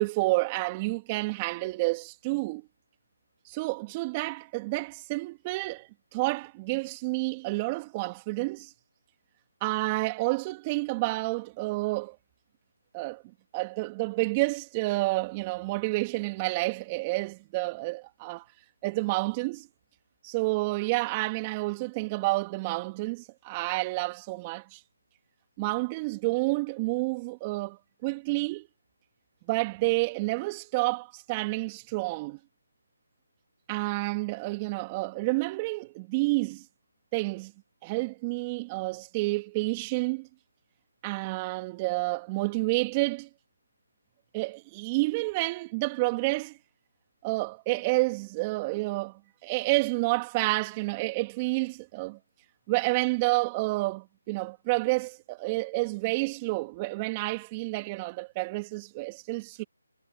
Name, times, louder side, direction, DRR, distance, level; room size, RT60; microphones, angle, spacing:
voice 1, 0.0-2.6 3.4-8.7 9.6-12.2 12.9-13.2 13.5-18.5 18.8-19.7 20.2-24.8 25.6-28.7 29.5-32.4 33.7-36.6 37.1-37.5 37.8-40.3 41.0-43.3 44.3-46.6 47.2-52.2 52.7-59.6, right 24 dB, 20° right, 2.8 m, -29 dB
figure-of-eight pair, 155°, 0 cm